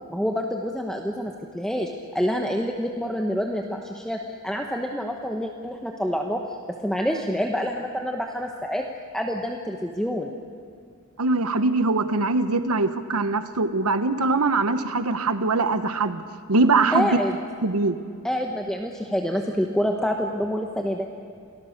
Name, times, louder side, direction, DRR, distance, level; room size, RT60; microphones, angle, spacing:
voice 1, 0.1-6.4 6.8-8.8 9.1-10.3 16.9-17.3 18.2-21.1, equal, 5° left, 2 dB, 1.1 m, -27 dB
voice 2, 11.2-16.2 16.5-17.2 17.6-18.0, right 3 dB, 90° right, 10 dB, 1.0 m, -22 dB
28.5 x 18.5 x 6.6 m, 2.3 s
head